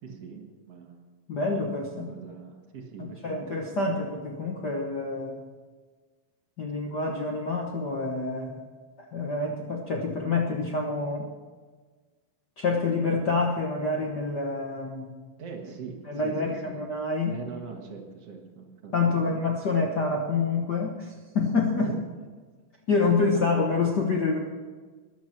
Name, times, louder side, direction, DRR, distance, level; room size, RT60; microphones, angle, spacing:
voice 1, 0.0-1.0 1.9-3.5 3.9-4.0 15.4-16.8 17.2-19.3 21.8-22.0 23.0-23.5, right 5 dB, 55° right, 2 dB, 2.5 m, -42 dB
voice 2, 1.3-2.1 3.0-5.4 6.6-8.6 9.0-11.3 12.6-15.2 16.1-17.4 18.9-21.9 22.9-24.4, left 3 dB, 50° left, 0 dB, 1.3 m, -27 dB
14.0 x 11.0 x 5.9 m, 1.4 s
omnidirectional pair, 3.4 m